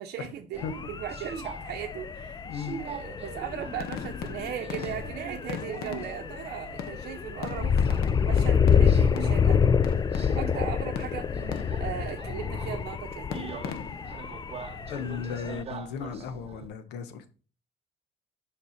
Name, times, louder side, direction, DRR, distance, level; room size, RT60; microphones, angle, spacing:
voice 1, 0.0-2.5 2.8-7.7 8.2-9.6 10.4-13.6, right 9 dB, 75° right, 0.7 m, -38 dB
Subway metro underground, 0.5-16.7, right 7 dB, 35° right, 0.7 m, -44 dB
sound 1, 0.6-15.6, left 6 dB, 25° left, 0.4 m, -28 dB
voice 2, 2.4-2.8 14.9-17.3, left 6 dB, 90° left, 0.9 m, -36 dB
sound 2, 3.8-6.5 6.8-10.6 11.0-12.0 13.3-14.2, left 8 dB, 65° left, 0.7 m, -39 dB
6.7 x 5.4 x 4.3 m
cardioid pair, 110°, 17 cm